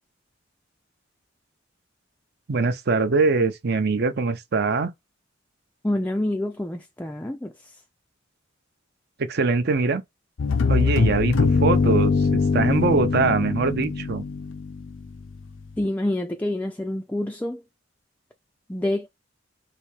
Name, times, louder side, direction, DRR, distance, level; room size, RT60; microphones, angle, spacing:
voice 1, 2.5-4.9 9.3-10.0 10.7-14.2, right 4 dB, 55° right, 0.6 m, -23 dB
voice 2, 5.8-7.5 15.8-17.6 18.7-19.1, left 1 dB, 10° left, 0.3 m, -27 dB
sound 1, 10.4-15.2, left 4 dB, 80° left, 0.5 m, -22 dB
3.4 x 2.6 x 3.2 m
head